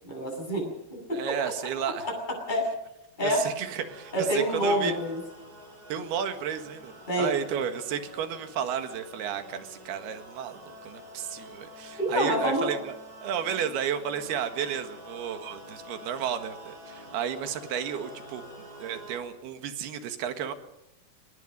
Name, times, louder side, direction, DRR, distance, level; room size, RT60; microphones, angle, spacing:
voice 1, 0.0-1.4 1.6-1.7 2.0-2.7 3.2-3.5 4.1-5.2 7.1-7.3 12.0-12.7, equal, 10° left, 0 dB, 8.0 m, -27 dB
voice 2, 1.1-2.1 3.2-5.0 5.9-13.0 13.2-18.4 18.8-20.5, right 8 dB, 85° right, 8 dB, 3.7 m, -32 dB
sound 1, 3.6-19.2, equal, 25° right, 5.1 m, -47 dB
25.0 x 20.5 x 5.4 m, 0.88 s
omnidirectional pair, 4.4 m